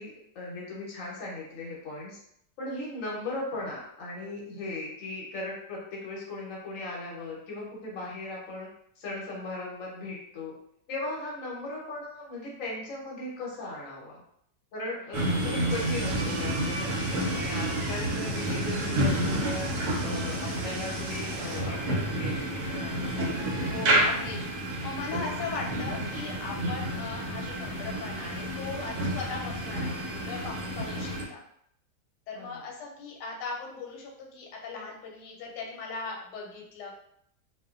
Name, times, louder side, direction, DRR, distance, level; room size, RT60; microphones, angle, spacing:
voice 1, 0.0-2.2 2.6-8.7 9.0-10.5 10.9-14.2 14.7-23.1 32.4-32.5, left 2 dB, 60° left, -4 dB, 1.1 m, -38 dB
sound 1, 15.1-31.3, right 1 dB, 70° right, 0.9 m, -30 dB
Water, 15.7-21.6, right 3 dB, 85° right, 1.2 m, -42 dB
voice 2, 23.7-31.4 32.3-36.9, left 4 dB, 90° left, 0 dB, 1.2 m, -39 dB
2.6 x 2.3 x 2.3 m, 0.71 s
omnidirectional pair, 1.8 m